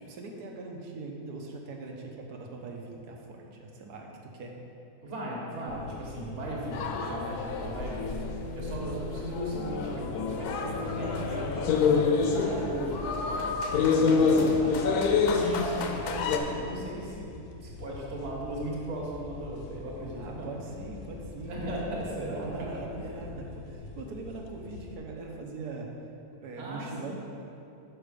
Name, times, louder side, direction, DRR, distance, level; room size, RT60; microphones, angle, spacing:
voice 1, 0.0-4.5 13.9-14.8 20.1-21.8 22.1-25.9 26.4-27.1, right 3 dB, 85° right, 0 dB, 1.4 m, -41 dB
voice 2, 5.0-8.1 8.5-14.5 15.3-17.3 17.6-20.5 21.5-22.7 23.0-23.1 26.6-27.1, right 1 dB, 50° right, -4 dB, 1.6 m, -37 dB
sound 1, 5.7-25.0, left 3 dB, 65° left, 0.9 m, -45 dB
sound 2, 6.7-16.4, left 5 dB, 80° left, 1.2 m, -27 dB
6.3 x 5.6 x 5.0 m, 2.7 s
omnidirectional pair, 1.7 m